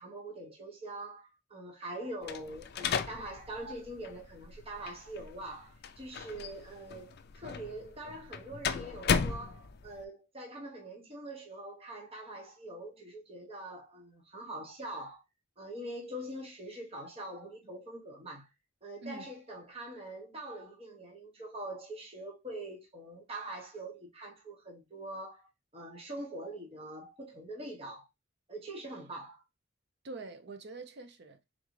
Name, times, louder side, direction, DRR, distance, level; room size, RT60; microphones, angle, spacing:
voice 1, 0.0-15.2 15.6-18.5 18.8-28.1 28.5-29.4, right 1 dB, 30° right, 1.1 m, -44 dB
sound 1, 2.2-10.0, left 6 dB, 50° left, 0.4 m, -36 dB
voice 2, 30.0-31.4, right 3 dB, 55° right, 0.8 m, -45 dB
3.8 x 3.7 x 3.2 m
head